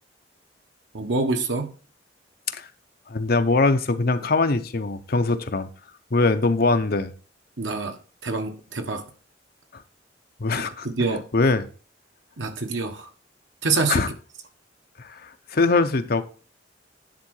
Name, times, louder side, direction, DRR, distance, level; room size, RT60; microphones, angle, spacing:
voice 1, 0.9-1.7 7.6-9.1 10.8-11.3 12.4-13.1 13.6-14.0, right 3 dB, 80° right, 1.4 m, -26 dB
voice 2, 3.1-5.7 6.1-7.1 9.7-9.8 10.4-10.9 11.3-11.6 13.9-14.1 15.0-16.2, left 3 dB, 55° left, 0.8 m, -22 dB
10.5 x 3.8 x 6.4 m
head